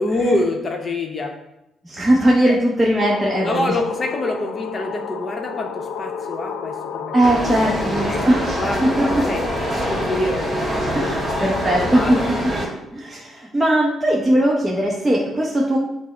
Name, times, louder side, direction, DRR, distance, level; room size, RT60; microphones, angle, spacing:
voice 1, 0.0-1.3 2.4-2.5 3.4-8.2 8.6-11.2 11.8-12.2, left 2 dB, 40° left, 2 dB, 0.7 m, -26 dB
voice 2, 1.8-3.8 7.1-9.2 10.9-12.2 12.9-15.8, right 1 dB, 15° right, -3 dB, 0.7 m, -19 dB
sound 1, 3.0-12.5, left 6 dB, 80° left, 0.3 m, -31 dB
sound 2, 7.2-12.7, right 1 dB, 35° right, 1.4 m, -25 dB
6.0 x 2.0 x 4.3 m, 0.89 s
cardioid pair, 90°, 0 cm